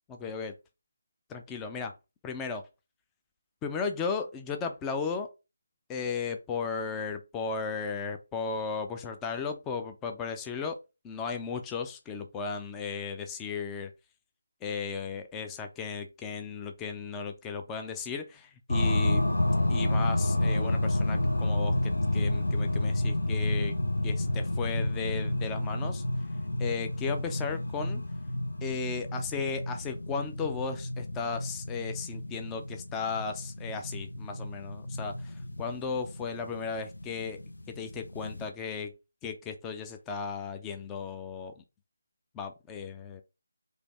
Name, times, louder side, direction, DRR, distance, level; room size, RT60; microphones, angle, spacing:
voice 1, 0.2-0.6 1.3-1.9 2.2-2.7 3.6-5.3 5.9-13.9 14.6-19.3 19.7-23.8 24.0-26.0 26.6-28.0 28.6-37.4 37.7-38.9 39.2-41.6 42.3-43.2, left 5 dB, 10° left, 5 dB, 0.3 m, -35 dB
sound 1, 18.7-38.5, left 1 dB, 90° left, 0.8 m, -30 dB
3.3 x 2.6 x 4.0 m, 0.27 s
figure-of-eight pair, 165°, 0 cm